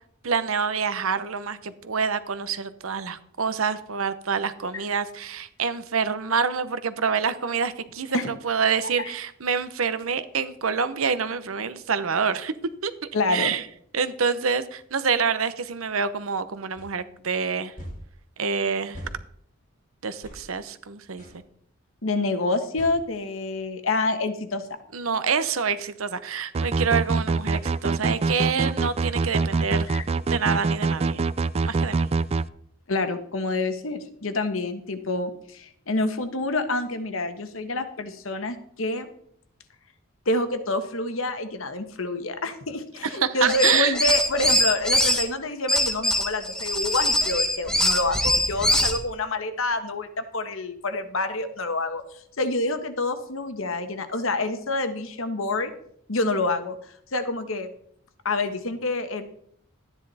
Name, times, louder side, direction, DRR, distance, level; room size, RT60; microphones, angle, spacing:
voice 1, 0.2-12.5 12.8-12.9 13.3-13.6 13.9-17.7 18.4-19.0 20.0-21.2 24.9-29.9 30.3-31.2 31.6-32.1 43.1-43.9, right 6 dB, 80° right, 13 dB, 0.9 m, -26 dB
voice 2, 13.1-13.5 22.0-24.7 29.9-30.1 32.9-39.1 40.2-55.7 56.1-56.7 57.1-57.7 58.2-59.3, left 2 dB, 70° left, 9 dB, 1.3 m, -27 dB
sound 1, 16.8-16.9 17.8-18.0 18.9-19.2 20.2-20.4 21.2-21.4 22.8-23.0, equal, 40° left, 3.8 m, -39 dB
sound 2, 26.5-32.5, right 4 dB, 30° right, 0.3 m, -24 dB
sound 3, 43.4-45.2 45.7-49.0, left 1 dB, 5° left, 1.3 m, -22 dB
13.0 x 9.9 x 4.2 m, 0.67 s
head